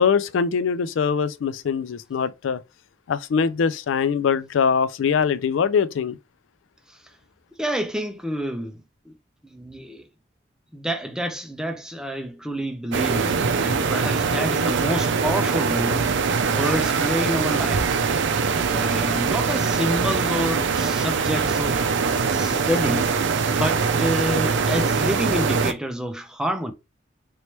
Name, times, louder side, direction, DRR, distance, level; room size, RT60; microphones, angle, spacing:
voice 1, 0.0-2.6 3.1-6.2, left 6 dB, 80° left, 0.4 m, -22 dB
voice 2, 7.6-9.1 9.4-10.0 10.7-16.1 16.4-18.0 18.7-23.1 23.5-26.7, equal, 5° right, 0.5 m, -28 dB
sound 1, 12.9-25.7, right 5 dB, 70° right, 0.5 m, -22 dB
3.0 x 3.0 x 3.1 m
head